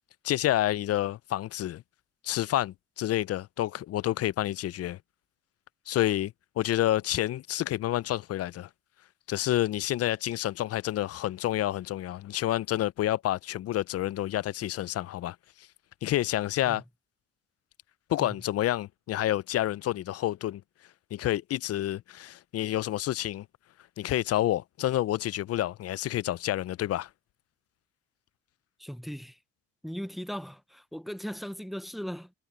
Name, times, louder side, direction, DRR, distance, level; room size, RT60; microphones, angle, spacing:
voice 1, 0.2-1.8 2.2-5.0 5.9-8.7 9.3-15.4 16.0-16.8 18.1-20.6 21.1-23.5 24.0-27.1, left 13 dB, 55° left, 0.4 m, -29 dB
voice 2, 28.8-29.4 29.8-32.3, equal, ahead, 0.5 m, -38 dB
cardioid pair, 90°, 30 cm